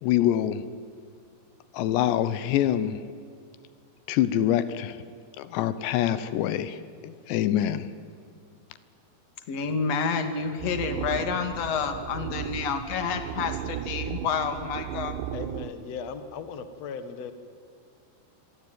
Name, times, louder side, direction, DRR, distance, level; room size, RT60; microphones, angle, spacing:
voice 1, 0.0-0.7 1.7-3.1 4.1-5.0 5.4-7.9, left 11 dB, 80° left, 3.1 m, -25 dB
voice 2, 9.5-15.1, left 5 dB, 45° left, 2.7 m, -29 dB
sound 1, 10.6-15.7, right 13 dB, 85° right, 3.1 m, -35 dB
voice 3, 15.3-17.3, left 5 dB, 60° left, 1.7 m, -37 dB
28.0 x 23.0 x 9.2 m
omnidirectional pair, 5.1 m